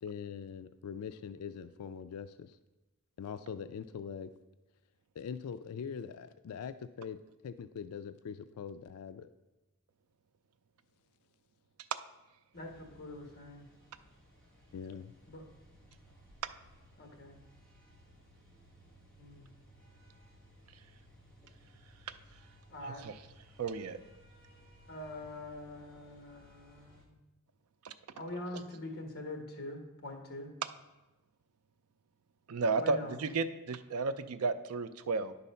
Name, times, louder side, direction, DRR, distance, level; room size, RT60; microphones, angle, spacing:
voice 1, 0.0-2.6 3.2-4.3 5.2-7.2 7.4-9.3 14.7-15.1, left 7 dB, 75° left, 11 dB, 0.4 m, -42 dB
voice 2, 12.5-13.6 15.3-15.4 17.0-17.4 19.2-19.5 22.7-23.0 24.9-27.1 28.1-30.5 32.8-33.2, left 1 dB, 45° left, 3 dB, 1.5 m, -44 dB
sound 1, 12.5-27.0, equal, 5° left, 1.7 m, -60 dB
voice 3, 22.8-23.1 23.6-24.0 27.8-27.9 32.5-35.3, right 4 dB, 75° right, 11 dB, 0.5 m, -33 dB
10.0 x 4.1 x 5.5 m, 1.1 s
head